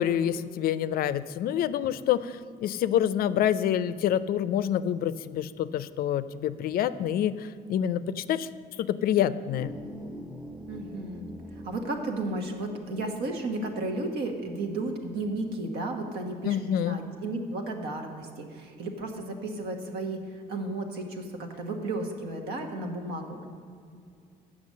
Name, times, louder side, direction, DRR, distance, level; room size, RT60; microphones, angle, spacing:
voice 1, 0.0-8.5 8.8-9.7 16.4-17.0, left 10 dB, 60° left, 15 dB, 0.4 m, -27 dB
sound 1, 9.5-16.5, equal, 5° right, 0.7 m, -46 dB
voice 2, 10.7-11.2 11.6-23.5, right 2 dB, 75° right, 4 dB, 1.3 m, -33 dB
7.9 x 6.0 x 7.4 m, 2.3 s
cardioid pair, 110°, 17 cm